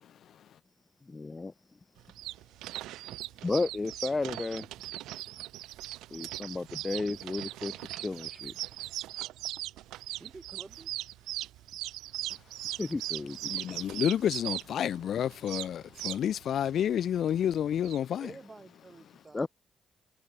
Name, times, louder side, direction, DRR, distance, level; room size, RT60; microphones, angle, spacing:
voice 1, 1.0-1.5 3.4-4.7 6.1-8.5 12.8-13.8 19.3-19.5, left 3 dB, 30° left, 1.0 m, -33 dB
sound 1, 2.0-18.0, right 15 dB, 70° right, 1.6 m, -39 dB
voice 2, 10.2-10.9 18.2-19.5, right 3 dB, 30° right, 7.8 m, -49 dB
voice 3, 13.5-18.2, left 9 dB, 60° left, 0.5 m, -29 dB
hypercardioid pair, 40°, 0 cm